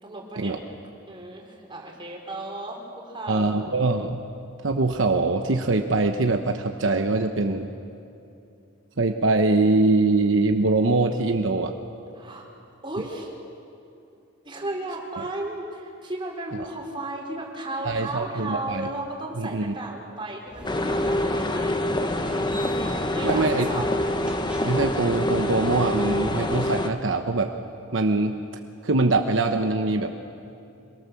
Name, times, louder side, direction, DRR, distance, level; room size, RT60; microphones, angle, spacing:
voice 1, 0.0-0.5 1.1-3.6 12.1-12.5 12.8-13.3 14.4-22.0 23.1-24.0, right 2 dB, 25° right, -1 dB, 4.6 m, -34 dB
voice 2, 3.3-4.3 4.6-7.7 9.0-11.7 17.8-18.9 19.4-19.7 22.5-22.6 23.2-23.7 24.6-27.5 27.9-28.3 28.8-30.1, right 3 dB, 70° right, 5 dB, 1.1 m, -23 dB
sound 1, 20.5-26.7, equal, 5° right, 2.3 m, -41 dB
sound 2, 20.6-26.9, left 1 dB, 25° left, 1.2 m, -26 dB
26.0 x 23.0 x 7.1 m, 2.7 s
head